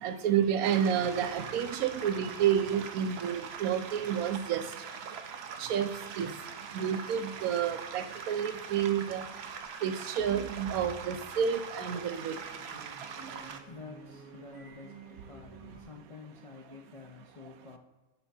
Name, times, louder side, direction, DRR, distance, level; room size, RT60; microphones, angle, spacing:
voice 1, 0.0-4.6 5.6-5.9 6.2-6.3 6.7-9.2 9.8-12.4, right 8 dB, 80° right, 8 dB, 1.1 m, -30 dB
sound 1, 0.6-13.6, right 6 dB, 60° right, 0.7 m, -42 dB
sound 2, 8.7-15.8, right 2 dB, 85° left, 2.4 m, -51 dB
voice 2, 13.7-15.0 15.3-17.8, left 4 dB, 50° left, 0 dB, 0.4 m, -49 dB
9.4 x 3.5 x 4.2 m, 1.2 s
omnidirectional pair, 1.5 m